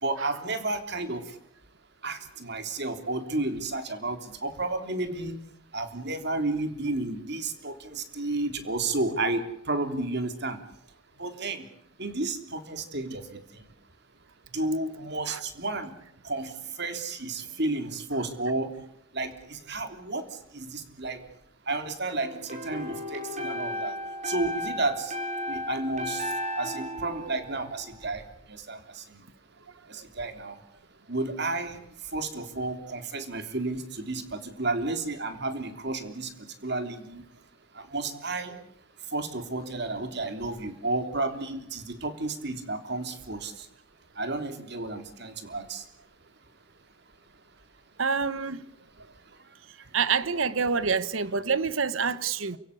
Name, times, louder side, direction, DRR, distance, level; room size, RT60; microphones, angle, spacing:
voice 1, 0.0-1.2 2.0-5.4 5.7-10.6 11.2-11.7 12.0-13.4 14.5-15.9 16.2-16.5 16.8-18.7 19.1-20.3 20.5-21.2 21.7-23.9 24.3-25.1 25.5-26.3 26.6-28.2 28.5-29.2 29.9-30.6 31.1-31.8 32.1-36.3 36.6-37.2 37.8-38.6 39.1-43.5 44.2-45.8, right 2 dB, 55° right, 3.5 m, -32 dB
sound 1, 22.1-28.1, equal, 35° right, 6.1 m, -35 dB
voice 2, 48.0-48.6 49.9-52.6, right 5 dB, 80° right, 1.1 m, -27 dB
29.5 x 16.5 x 8.5 m
head